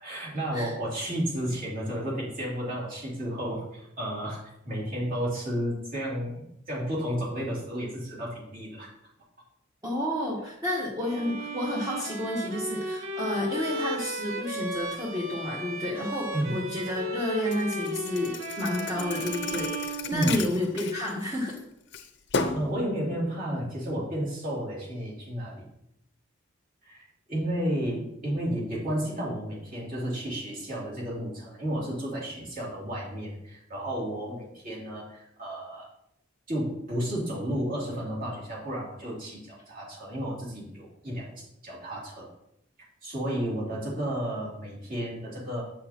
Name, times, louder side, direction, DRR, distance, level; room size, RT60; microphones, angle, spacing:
voice 1, 0.0-8.9 16.3-16.5 20.1-20.4 22.5-25.6 26.8-35.9 36.5-42.3 43.0-45.6, equal, 45° right, -5 dB, 2.8 m, -32 dB
voice 2, 9.8-21.6, left 1 dB, 20° right, -4 dB, 1.1 m, -30 dB
Bowed string instrument, 11.0-20.7, right 1 dB, 85° right, 0.9 m, -35 dB
Thump thud, 17.5-21.5 21.9-22.7, left 4 dB, 60° left, 0.6 m, -34 dB
8.2 x 6.3 x 2.9 m, 0.80 s
head